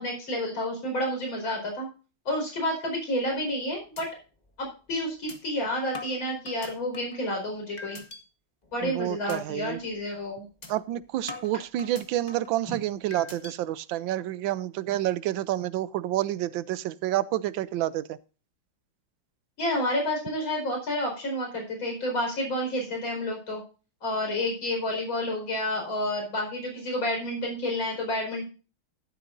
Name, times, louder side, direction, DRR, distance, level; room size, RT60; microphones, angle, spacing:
voice 1, 0.0-1.9 2.3-4.1 4.6-8.0 8.7-10.5 12.7-12.8 19.6-23.6 24.0-28.5, left 1 dB, 70° left, 2 dB, 5.6 m, -30 dB
sound 1, 3.3-3.6 4.0-4.1 4.5-4.6 5.3-5.4 5.9-7.2 7.8-8.2 8.6-8.9 9.3-9.4 9.8-10.0 10.6-10.7 11.3-12.5 13.1-13.5, left 3 dB, 20° left, 1.5 m, -42 dB
voice 2, 8.8-9.8 10.7-18.2, right 14 dB, 75° right, 17 dB, 1.3 m, -29 dB
12.5 x 12.0 x 2.6 m, 0.34 s
omnidirectional pair, 2.3 m